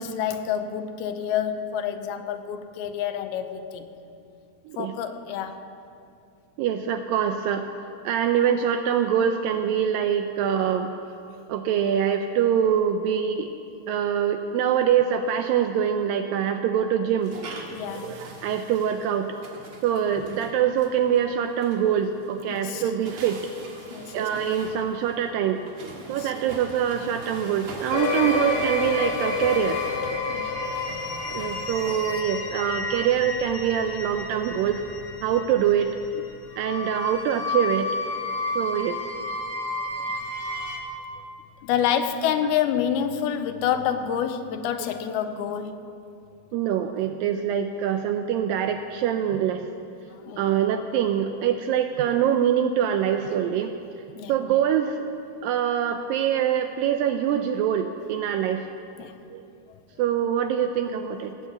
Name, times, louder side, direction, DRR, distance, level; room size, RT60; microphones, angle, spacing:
voice 1, 0.0-3.9 4.8-5.6 17.7-18.2 22.5-22.8 23.9-24.2 26.0-26.3 30.2-30.6 39.8-40.2 40.5-40.6 41.6-45.8 50.1-50.5 54.2-54.3 59.0-59.1, left 9 dB, 85° left, 8 dB, 2.6 m, -28 dB
voice 2, 6.6-7.7 8.0-10.9 11.5-13.5 13.9-17.3 17.9-19.3 19.8-23.4 24.1-25.6 26.1-29.8 31.3-34.8 35.2-36.2 36.6-37.9 38.6-39.0 46.5-49.7 50.4-53.7 54.3-55.1 55.4-58.7 59.3-59.4 60.0-61.3, right 9 dB, 80° right, 7 dB, 2.0 m, -24 dB
sound 1, 17.2-32.2, right 3 dB, 55° right, 1.6 m, -43 dB
sound 2, 27.9-40.8, left 3 dB, 65° left, 1.4 m, -30 dB
17.5 x 7.3 x 8.2 m, 2.6 s
omnidirectional pair, 4.5 m